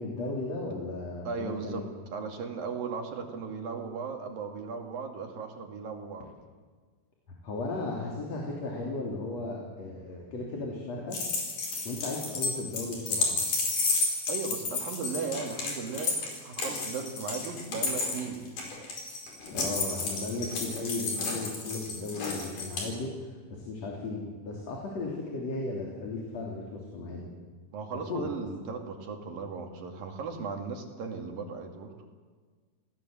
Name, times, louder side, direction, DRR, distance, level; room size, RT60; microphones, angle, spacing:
voice 1, 0.0-1.9 7.4-11.2 11.9-13.4 19.5-27.3 27.9-28.3, left 3 dB, 45° left, -1 dB, 4.2 m, -36 dB
voice 2, 1.3-1.8 2.1-6.3 14.3-18.5 27.7-31.9, right 5 dB, 70° right, 3 dB, 4.1 m, -36 dB
sound 1, 11.1-22.9, left 3 dB, 60° left, 6.2 m, -32 dB
28.0 x 18.5 x 7.8 m, 1.5 s
omnidirectional pair, 4.2 m